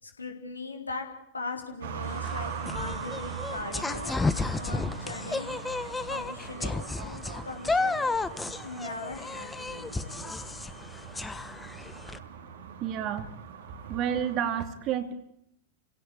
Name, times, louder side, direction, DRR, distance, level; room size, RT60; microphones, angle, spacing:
voice 1, 0.0-1.1 1.3-4.2 4.5-5.8 6.1-8.1 8.6-10.2, left 3 dB, 80° left, 4 dB, 4.1 m, -40 dB
sound 1, 1.8-14.6, right 6 dB, 60° right, 3.0 m, -41 dB
sound 2, 2.0-12.2, left 3 dB, 10° left, 1.3 m, -33 dB
voice 2, 12.8-13.3 13.9-15.1, right 9 dB, 35° right, 10 dB, 2.7 m, -29 dB
30.0 x 17.0 x 8.6 m, 0.79 s
figure-of-eight pair, 90°, 0 cm